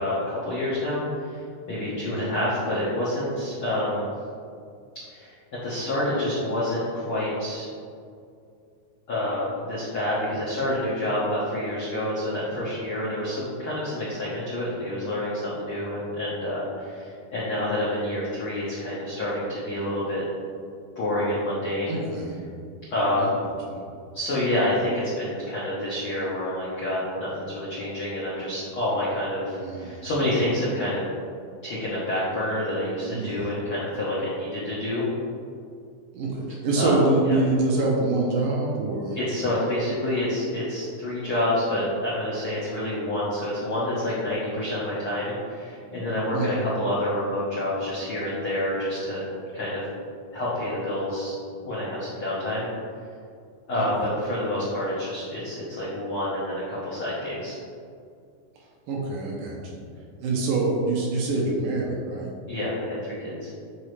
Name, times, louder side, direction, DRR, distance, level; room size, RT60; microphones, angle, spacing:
voice 1, 0.0-4.1 5.1-5.3 5.6-7.7 9.1-20.2 21.0-22.0 22.9-23.5 24.1-31.0 31.6-35.1 36.7-37.4 39.1-49.2 49.5-49.8 50.3-51.3 51.6-52.7 53.7-57.6 62.5-63.5, left 1 dB, 75° left, -9 dB, 1.2 m, -28 dB
voice 2, 21.9-22.4 23.2-23.3 23.7-23.8 29.6-30.0 33.1-33.5 36.1-39.2 46.3-46.6 53.8-53.9 58.9-59.8 60.2-62.3, right 2 dB, 75° right, -2 dB, 2.1 m, -25 dB
8.5 x 4.0 x 3.3 m, 2.4 s
omnidirectional pair, 4.3 m